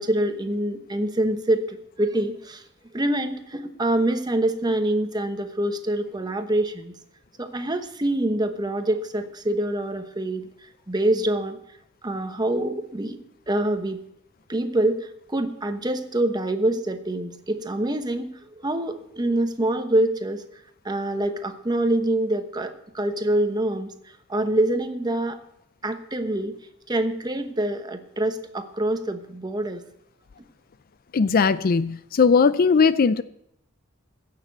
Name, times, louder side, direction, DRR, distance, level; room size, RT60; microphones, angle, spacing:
voice 1, 0.0-2.6 2.9-6.9 7.4-10.5 10.9-11.6 12.0-13.2 13.5-14.0 14.5-20.4 20.8-23.9 24.3-25.4 25.8-26.6 26.9-29.8, right 1 dB, 20° right, 8 dB, 1.0 m, -25 dB
voice 2, 31.1-33.2, left 5 dB, 45° left, 15 dB, 0.4 m, -19 dB
15.5 x 6.8 x 8.0 m, 0.78 s
head